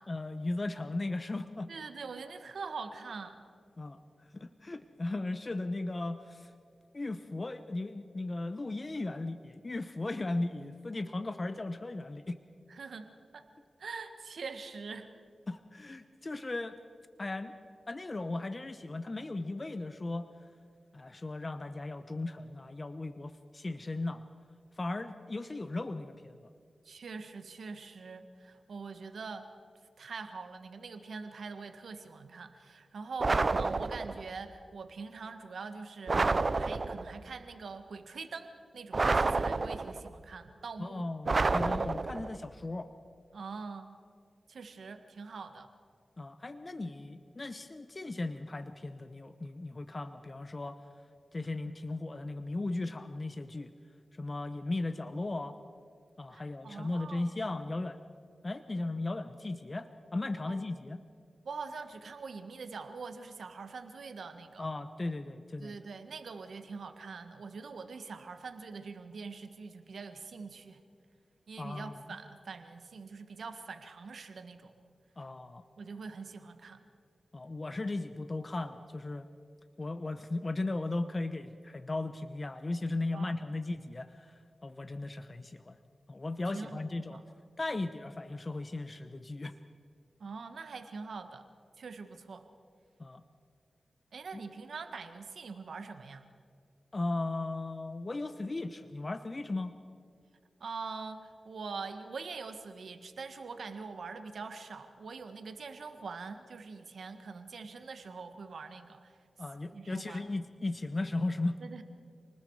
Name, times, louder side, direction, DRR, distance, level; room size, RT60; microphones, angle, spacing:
voice 1, 0.1-1.7 3.8-6.5 6.9-12.4 15.5-16.8 17.2-17.5 17.9-20.3 20.9-24.2 24.7-26.5 40.8-42.9 46.2-50.8 51.3-53.7 54.1-55.6 56.2-58.0 58.4-61.0 64.6-65.8 71.6-72.2 75.2-75.6 77.3-79.3 79.8-85.8 86.1-87.2 87.6-89.5 93.0-93.2 94.3-94.4 96.9-99.7 109.4-111.6, left 2 dB, 40° left, 10 dB, 1.0 m, -37 dB
voice 2, 1.7-3.4 12.7-13.1 13.3-13.5 13.8-15.1 26.8-29.5 30.0-41.1 43.3-43.9 44.5-45.7 56.3-57.3 60.5-60.6 61.4-64.7 65.6-70.8 71.5-74.7 75.8-76.8 83.1-83.3 86.5-87.2 90.2-91.4 91.8-92.5 94.1-96.3 100.6-109.2 109.7-110.2 111.6-111.8, right 4 dB, 80° right, 8 dB, 1.6 m, -44 dB
sound 1, 33.2-34.3 36.1-37.2 38.9-40.1 41.2-42.4, right 3 dB, 50° right, 0.7 m, -29 dB
28.5 x 20.0 x 4.8 m, 2.2 s
cardioid pair, 55°, 0 cm